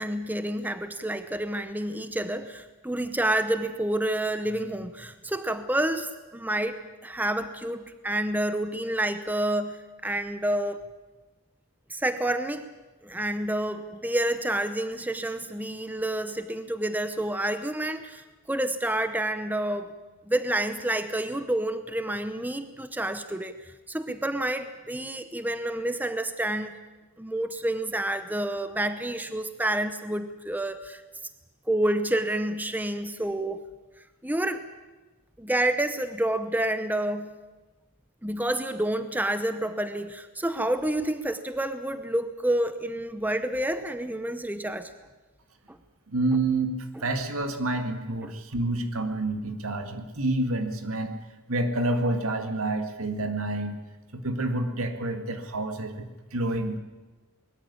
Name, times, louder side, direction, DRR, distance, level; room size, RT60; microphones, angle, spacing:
voice 1, 0.0-10.8 11.9-12.7 13.0-19.9 20.3-26.8 27.2-31.0 31.7-33.6 34.2-34.6 35.4-37.4 38.2-44.9 45.7-45.8, right 1 dB, 10° right, 10 dB, 0.8 m, -29 dB
voice 2, 46.1-46.7 47.0-51.1 51.5-53.8 54.1-56.8, right 2 dB, 80° right, 7 dB, 2.1 m, -28 dB
20.5 x 14.0 x 9.7 m, 1.2 s
head